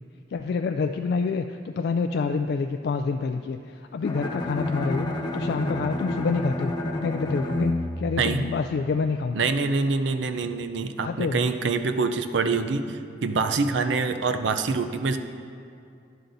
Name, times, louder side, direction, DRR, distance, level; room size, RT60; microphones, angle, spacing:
voice 1, 0.3-5.1 5.3-6.7 7.0-9.4 11.0-11.4, left 4 dB, 65° left, 6 dB, 0.3 m, -27 dB
Bowed string instrument, 4.0-9.1, left 1 dB, 25° left, 0.7 m, -30 dB
voice 2, 9.3-15.2, right 4 dB, 80° right, 8 dB, 0.5 m, -25 dB
11.0 x 10.5 x 2.7 m, 2.5 s
head